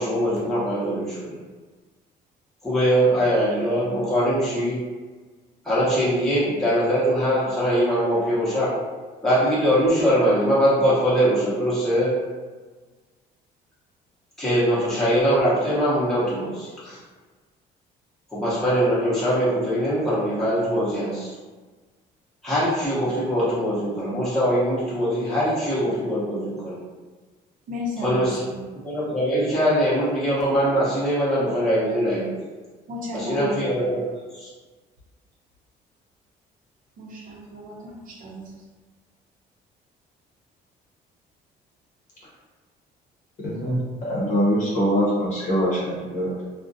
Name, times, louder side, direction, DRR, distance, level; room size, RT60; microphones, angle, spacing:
voice 1, 0.0-1.3 2.6-4.8 5.6-8.8 9.2-12.2 14.4-17.0 18.3-21.3 22.4-26.8 28.0-28.4 28.8-32.3 33.1-34.0 34.3-34.5, equal, ahead, -10 dB, 0.8 m, -22 dB
voice 2, 27.7-28.6 32.9-33.9 37.0-38.5, left 1 dB, 55° right, -3 dB, 0.7 m, -34 dB
voice 3, 43.4-46.4, equal, 45° left, -6 dB, 0.8 m, -23 dB
2.4 x 2.1 x 2.6 m, 1.3 s
cardioid pair, 110°, 17 cm